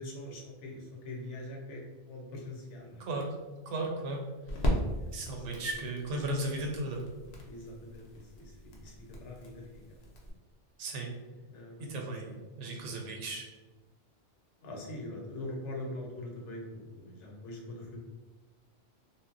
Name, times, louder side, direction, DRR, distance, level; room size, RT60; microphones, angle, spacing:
voice 1, 0.0-3.1 4.9-5.7 7.4-10.0 11.5-12.4 12.7-13.0 14.6-18.0, left 1 dB, 75° left, 0 dB, 1.0 m, -43 dB
sound 1, 2.4-10.3, equal, 50° left, 0.5 m, -38 dB
voice 2, 3.7-4.3 5.1-7.0 10.8-11.1 11.8-13.5, right 2 dB, 85° right, 1 dB, 0.9 m, -35 dB
2.1 x 2.0 x 3.6 m, 1.2 s
omnidirectional pair, 1.2 m